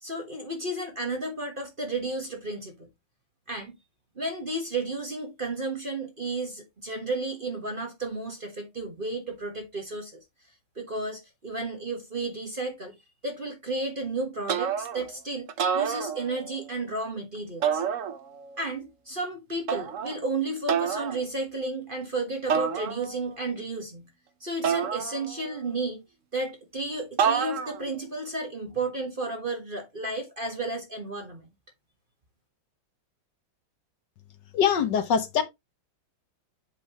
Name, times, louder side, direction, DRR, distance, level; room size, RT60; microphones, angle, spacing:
voice 1, 0.0-2.9 3.5-3.8 4.1-10.2 10.7-12.9 13.2-17.8 18.6-24.1 24.4-26.0 26.3-31.5, right 2 dB, 30° right, 1.3 m, -33 dB
sound 1, 14.5-15.1 15.5-16.6 17.6-18.5 19.7-20.2 20.7-21.2 22.5-23.3 24.6-25.6 27.2-27.9, right 7 dB, 55° right, 0.9 m, -28 dB
voice 2, 34.5-35.4, left 7 dB, 65° left, 1.4 m, -23 dB
8.1 x 5.4 x 3.0 m
omnidirectional pair, 2.2 m